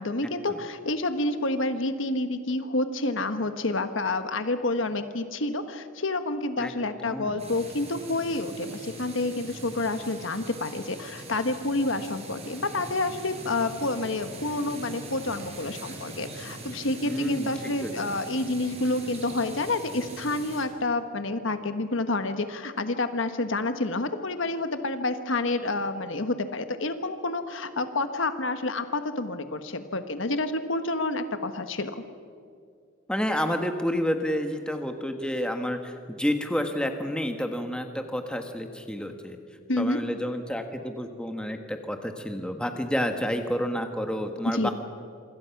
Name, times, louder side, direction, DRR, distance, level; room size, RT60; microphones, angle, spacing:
voice 1, 0.0-32.0 39.7-40.0 44.4-44.7, left 2 dB, 65° left, 9 dB, 1.4 m, -29 dB
voice 2, 7.0-7.4 17.1-18.2 33.1-39.4 39.8-44.7, equal, 5° left, 5 dB, 1.6 m, -30 dB
sound 1, 7.4-20.6, right 2 dB, 30° right, 4.8 m, -42 dB
27.0 x 25.0 x 6.0 m, 2.3 s
head